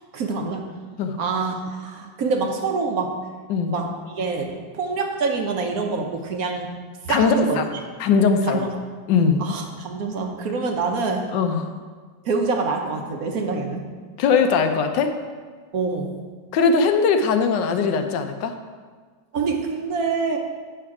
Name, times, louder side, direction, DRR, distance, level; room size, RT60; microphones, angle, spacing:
voice 1, 0.1-0.7 1.2-3.2 3.7-6.7 7.0-7.6 8.4-8.7 9.4-11.3 12.2-13.9 15.7-16.1 19.3-20.4, right 4 dB, 60° right, 3 dB, 1.1 m, -26 dB
voice 2, 7.1-7.6 8.0-8.7 9.1-9.4 11.3-11.7 14.2-15.1 16.5-18.5, left 5 dB, 75° left, 7 dB, 1.3 m, -20 dB
8.7 x 5.7 x 4.8 m, 1.5 s
omnidirectional pair, 2.0 m